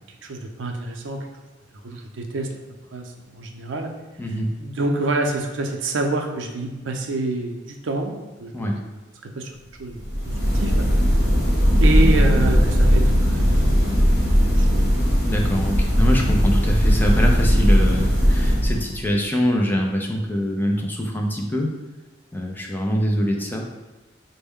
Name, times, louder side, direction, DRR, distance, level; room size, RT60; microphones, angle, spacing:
voice 1, 0.2-1.3 1.8-2.5 2.9-3.9 4.6-8.1 8.4-9.5 9.8-10.0 10.3-10.9 11.8-14.0 14.5-14.7 14.9-15.0, right 2 dB, 80° right, 2 dB, 0.5 m, -27 dB
voice 2, 4.2-4.6 8.5-8.8 15.2-21.8 22.3-23.6, equal, 10° left, 0 dB, 0.4 m, -24 dB
sound 1, 9.9-19.1, equal, 60° left, 1.4 m, -18 dB
4.3 x 2.1 x 3.5 m, 1.2 s
head